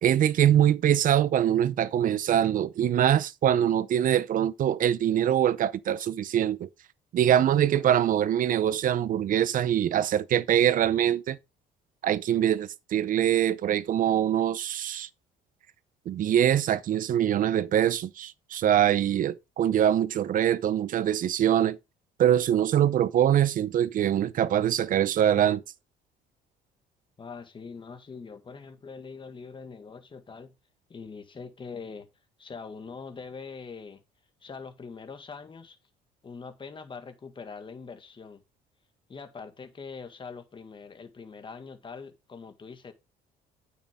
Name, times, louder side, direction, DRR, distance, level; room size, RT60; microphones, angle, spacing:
voice 1, 0.0-6.7 7.1-11.4 12.0-15.1 16.1-21.8 22.2-25.6, right 10 dB, 55° right, 0.7 m, -23 dB
voice 2, 7.7-8.1 27.2-30.5 30.9-32.1 32.4-34.0 34.4-35.8 36.2-38.4 39.1-42.9, left 5 dB, 30° left, 1.8 m, -43 dB
9.0 x 6.3 x 3.6 m
cardioid pair, 110°, 17 cm